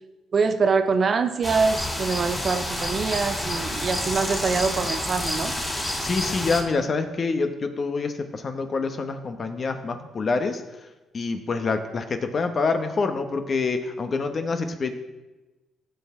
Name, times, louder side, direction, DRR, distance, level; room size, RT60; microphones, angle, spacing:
voice 1, 0.3-5.5, right 5 dB, 45° right, 9 dB, 0.7 m, -24 dB
sound 1, 1.4-6.6, left 1 dB, 10° left, 3.0 m, -29 dB
voice 2, 6.0-10.9 11.1-14.9, left 4 dB, 45° left, 7 dB, 1.0 m, -26 dB
15.5 x 5.9 x 3.7 m, 1.1 s
cardioid pair, 90°, 0 cm